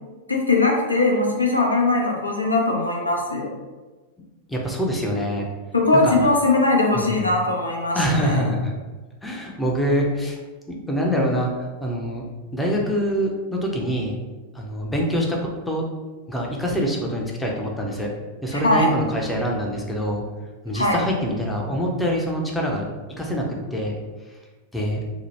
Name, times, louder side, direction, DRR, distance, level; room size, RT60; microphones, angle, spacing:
voice 1, 0.3-3.5 5.7-8.4 18.5-18.9 20.7-21.0, left 2 dB, 85° left, -1 dB, 0.5 m, -20 dB
voice 2, 4.5-5.5 6.0-6.2 6.9-7.3 7.9-8.7 9.2-10.4 10.7-12.2 12.5-14.2 14.5-15.4 15.7-15.8 16.3-18.1 18.4-20.2 20.6-22.9 23.2-23.4 23.7-23.9 24.7-25.0, equal, 5° left, -1 dB, 0.5 m, -25 dB
2.8 x 2.1 x 3.2 m, 1.3 s
figure-of-eight pair, 90°, 0 cm